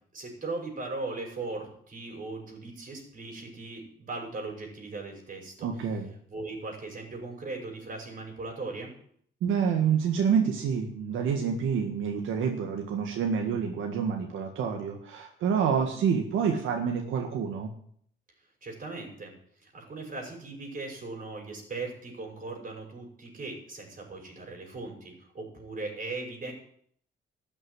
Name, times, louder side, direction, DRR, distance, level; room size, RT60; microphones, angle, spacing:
voice 1, 0.1-5.9 6.3-8.9 18.6-19.3 19.6-26.5, right 3 dB, 40° right, 2 dB, 6.1 m, -38 dB
voice 2, 5.6-6.1 9.4-17.7, right 7 dB, 85° right, 2 dB, 1.8 m, -28 dB
12.5 x 6.6 x 9.7 m, 0.63 s
cardioid pair, 90°, 20 cm